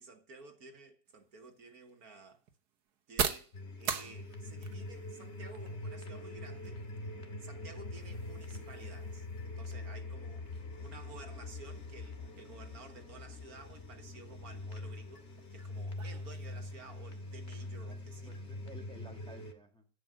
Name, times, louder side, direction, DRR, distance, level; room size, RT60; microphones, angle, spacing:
voice 1, 0.0-2.4 3.1-3.5 3.8-6.8 7.4-10.5 10.8-18.4, right 3 dB, 65° right, 1.9 m, -53 dB
sound 1, 1.0-18.6, right 7 dB, 85° right, 1.7 m, -45 dB
sound 2, 3.5-19.5, left 2 dB, 45° left, 1.8 m, -44 dB
voice 2, 17.9-19.9, right 1 dB, 5° left, 1.4 m, -55 dB
10.5 x 7.8 x 7.5 m
omnidirectional pair, 1.7 m